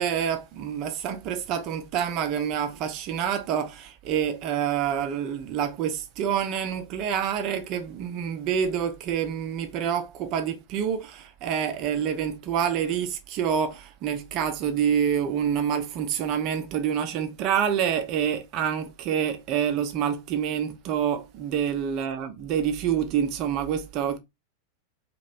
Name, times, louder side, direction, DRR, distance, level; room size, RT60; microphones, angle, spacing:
voice 1, 0.0-24.2, right 8 dB, 40° right, 0.7 m, -27 dB
3.0 x 3.0 x 2.6 m
figure-of-eight pair, 90°, 0 cm